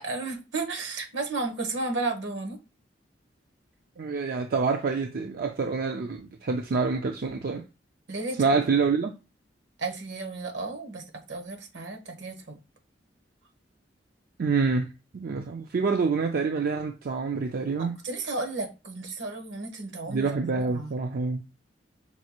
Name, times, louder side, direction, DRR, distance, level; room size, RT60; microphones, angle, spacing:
voice 1, 0.0-2.6 8.1-8.4 9.8-12.6 17.8-20.9, right 3 dB, 75° right, 1.1 m, -33 dB
voice 2, 4.0-7.6 8.4-9.1 14.4-14.9 15.1-18.0 20.1-21.4, right 4 dB, 55° right, 0.4 m, -27 dB
5.3 x 2.4 x 2.9 m
head